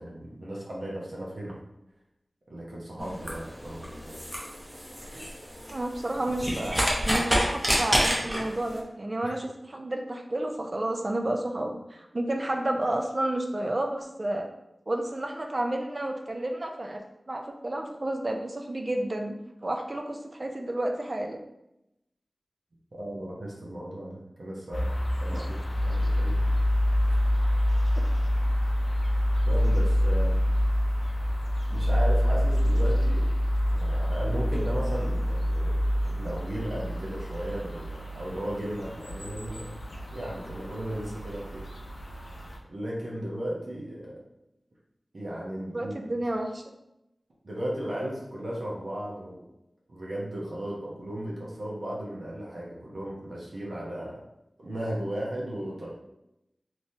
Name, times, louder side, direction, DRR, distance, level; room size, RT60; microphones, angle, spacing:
voice 1, 0.0-1.5 2.5-4.2 5.0-5.2 9.2-9.3 22.9-24.9 25.2-26.4 29.4-30.4 31.7-33.3 33.7-35.8 36.0-39.6 40.1-41.6 42.7-44.1 45.1-46.0 47.4-49.4 49.9-54.2 54.6-55.9, right 1 dB, 65° right, -5 dB, 1.0 m, -35 dB
sound 1, 3.0-8.8, equal, 5° right, 0.8 m, -29 dB
voice 2, 5.7-14.5 14.9-21.4 25.3-25.5 45.7-46.6, right 1 dB, 40° right, 3 dB, 0.4 m, -31 dB
sound 2, 24.7-42.6, equal, 55° left, 0.5 m, -26 dB
3.3 x 2.9 x 2.8 m, 0.85 s
wide cardioid pair, 80°, 0 cm